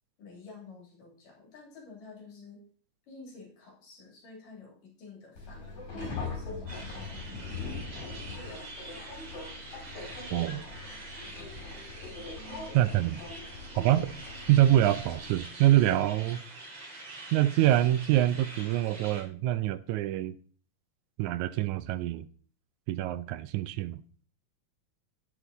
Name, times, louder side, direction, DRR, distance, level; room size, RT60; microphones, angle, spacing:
voice 1, 0.2-2.6 3.1-7.6, left 4 dB, 75° left, 4.6 m, -50 dB
Subway metro underground, 5.4-15.4, left 3 dB, 55° left, 5.8 m, -41 dB
sound 1, 6.7-19.2, right 2 dB, 45° right, 4.4 m, -46 dB
voice 2, 10.3-10.6 12.7-13.2 13.8-14.1 14.5-16.4 17.3-20.4 21.2-22.3 22.9-24.0, right 13 dB, 80° right, 1.7 m, -25 dB
10.0 x 9.9 x 4.1 m
omnidirectional pair, 3.9 m